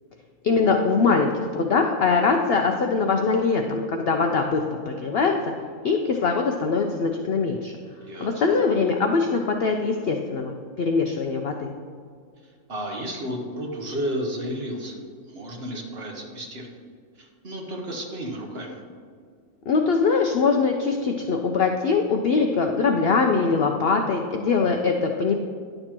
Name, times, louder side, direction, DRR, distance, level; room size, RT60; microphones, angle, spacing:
voice 1, 0.4-4.6 4.9-5.5 5.8-7.7 8.2-11.7 19.7-25.3, left 4 dB, 65° left, 3 dB, 0.6 m, -22 dB
voice 2, 8.0-8.4 12.7-15.0 15.2-16.7 17.2-18.8, equal, 45° right, 1 dB, 1.1 m, -32 dB
10.5 x 6.6 x 2.9 m, 2.1 s
omnidirectional pair, 1.5 m